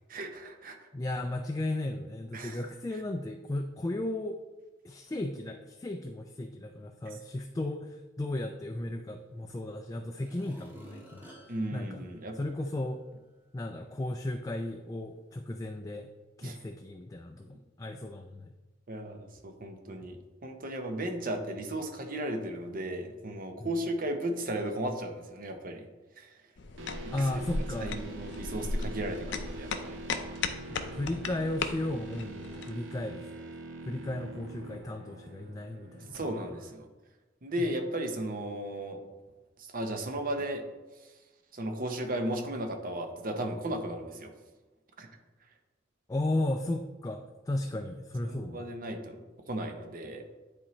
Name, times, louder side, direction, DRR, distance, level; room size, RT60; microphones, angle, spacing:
voice 1, 0.1-0.9 2.3-2.6 11.5-12.4 16.4-16.6 18.9-25.9 26.2-26.4 27.0-27.4 27.8-30.0 36.1-36.9 37.4-39.0 39.6-40.6 41.5-44.3 45.0-45.1 48.5-49.2 49.5-50.2, right 1 dB, 50° right, 5 dB, 0.9 m, -35 dB
voice 2, 0.9-4.4 4.8-12.0 12.3-13.0 13.5-16.1 16.4-18.5 23.6-23.7 27.1-27.9 30.7-33.3 33.9-36.3 46.1-48.7, left 1 dB, 20° left, 4 dB, 0.4 m, -35 dB
sound 1, 9.3-9.4 10.0-12.9 13.4-13.5, right 1 dB, 10° right, 1.2 m, -54 dB
sound 2, 26.6-32.7, left 3 dB, 65° left, 0.6 m, -37 dB
sound 3, 26.8-36.7, right 2 dB, 85° right, 0.7 m, -45 dB
9.9 x 4.2 x 3.2 m, 1.2 s
head